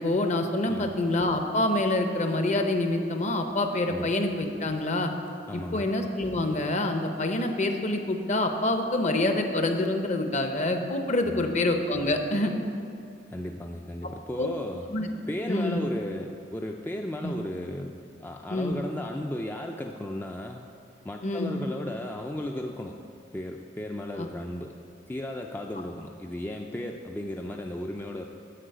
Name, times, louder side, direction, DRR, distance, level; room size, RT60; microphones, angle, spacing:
voice 1, 0.0-5.1 5.5-12.5 14.4-14.5 14.9-15.1 15.5-15.8 17.2-17.3 18.5-18.7 21.2-21.6 24.2-24.3, left 2 dB, 40° left, 6 dB, 0.7 m, -26 dB
voice 2, 5.5-5.9 11.2-11.5 13.3-14.9 15.3-20.7 21.0-23.0 23.3-24.7 25.1-28.3, left 1 dB, 10° left, 2 dB, 0.3 m, -35 dB
10.0 x 4.8 x 7.9 m, 2.5 s
head